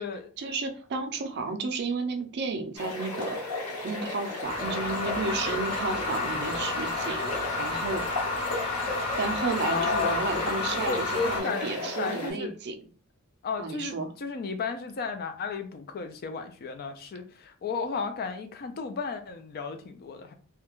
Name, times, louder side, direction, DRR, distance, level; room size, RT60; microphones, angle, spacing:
voice 1, 0.4-3.4 3.8-8.0 9.2-12.8 13.6-14.1, right 3 dB, 50° right, 6 dB, 0.4 m, -32 dB
sound 1, 2.8-12.3, left 2 dB, 85° left, 1.0 m, -35 dB
sound 2, 4.4-11.4, left 3 dB, 25° left, 0.9 m, -31 dB
voice 2, 9.7-10.5 10.8-12.5 13.4-20.3, left 5 dB, 45° left, 8 dB, 0.4 m, -33 dB
2.4 x 2.2 x 2.9 m, 0.40 s
head